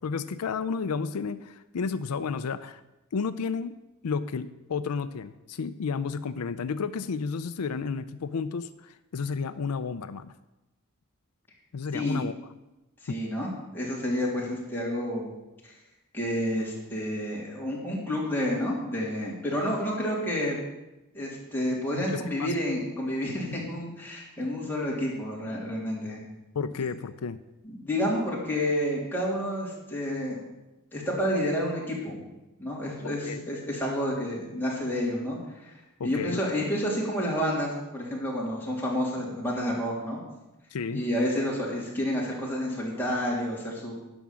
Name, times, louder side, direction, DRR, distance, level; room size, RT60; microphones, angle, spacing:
voice 1, 0.0-2.8 3.1-3.7 4.0-10.3 11.7-12.3 13.1-13.2 21.9-22.6 26.5-27.4 33.0-33.5 36.0-36.4 36.7-36.8 40.7-41.0, left 5 dB, 90° left, 12 dB, 0.5 m, -32 dB
voice 2, 13.0-15.3 15.6-15.7 16.1-20.6 21.1-26.2 27.6-30.4 30.9-32.3 32.6-35.8 36.0-40.2 40.9-43.9, equal, 10° left, -5 dB, 3.1 m, -30 dB
10.5 x 6.1 x 7.5 m, 0.99 s
head